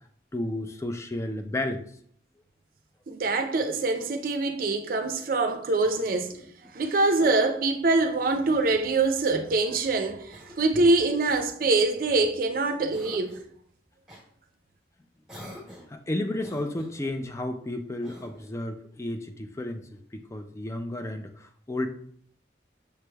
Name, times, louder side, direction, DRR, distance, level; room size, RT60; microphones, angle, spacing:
voice 1, 0.3-1.9 15.5-21.9, left 1 dB, 15° left, 0.3 m, -32 dB
voice 2, 3.1-6.4 6.7-13.4, right 3 dB, 50° right, 0.5 m, -24 dB
Cough, 5.8-6.6 7.9-9.1 10.3-10.8 11.6-12.4 12.9-13.5 14.1-14.3 15.3-16.0 16.4-17.2 18.0-18.6, left 1 dB, 5° right, 1.1 m, -48 dB
6.7 x 3.2 x 2.2 m
head